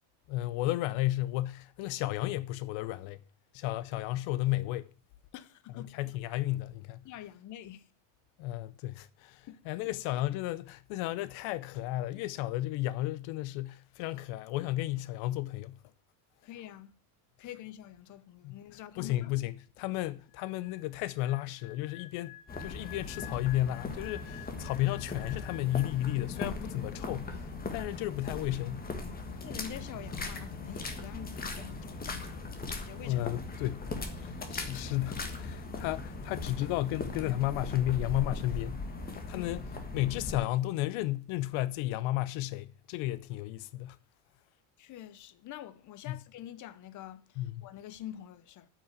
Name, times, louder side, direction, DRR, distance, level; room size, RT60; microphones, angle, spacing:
voice 1, 0.3-3.2 3.5-4.9 5.8-7.0 8.4-15.8 18.4-18.6 19.0-28.9 29.3-29.4 33.0-33.9 34.2-39.6 39.9-44.0 46.1-46.2 47.4-47.6, left 15 dB, 70° left, 0.7 m, -33 dB
voice 2, 5.3-5.9 7.0-7.9 9.5-9.6 16.4-16.9 17.4-19.3 29.4-33.2 34.2-34.3 39.3-39.5 44.8-48.7, left 11 dB, 40° left, 0.8 m, -46 dB
sound 1, 20.3-26.7 26.9-27.2, left 14 dB, 55° left, 3.3 m, -51 dB
sound 2, 22.5-40.4, left 3 dB, 20° left, 1.5 m, -39 dB
8.8 x 6.1 x 8.1 m
cardioid pair, 155°, 49 cm